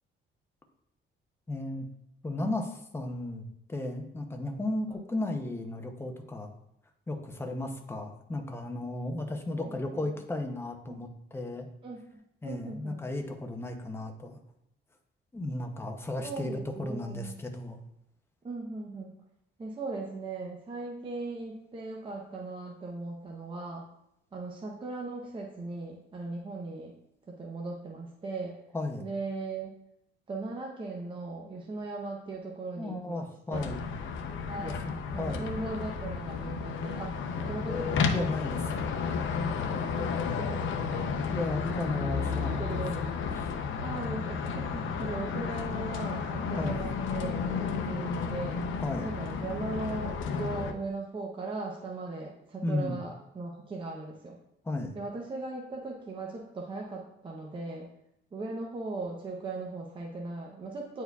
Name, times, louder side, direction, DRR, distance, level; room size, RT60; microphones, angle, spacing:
voice 1, 1.5-1.9 2.2-6.5 7.1-11.7 12.4-14.4 15.3-17.8 28.7-29.1 32.8-33.8 34.5-35.5 37.6-38.9 41.3-43.1 43.3-43.5 44.6-44.9 46.6-46.8 48.8-49.1 52.6-53.0 54.6-54.9, left 2 dB, 10° left, 4 dB, 0.7 m, -35 dB
voice 2, 9.5-10.1 10.9-11.0 11.8-13.0 16.2-17.4 18.4-19.1 19.6-23.8 24.3-26.9 27.3-28.6 29.0-29.7 30.3-33.6 34.3-34.8 35.1-37.2 37.4-38.5 39.9-40.6 40.9-41.3 42.6-43.4 43.8-48.6 49.0-54.4 54.9-57.9 58.3-61.0, right 3 dB, 25° right, -1 dB, 0.7 m, -38 dB
sound 1, 33.5-50.7, left 5 dB, 75° left, 0.6 m, -32 dB
9.4 x 4.5 x 2.3 m, 0.78 s
cardioid pair, 145°, 20 cm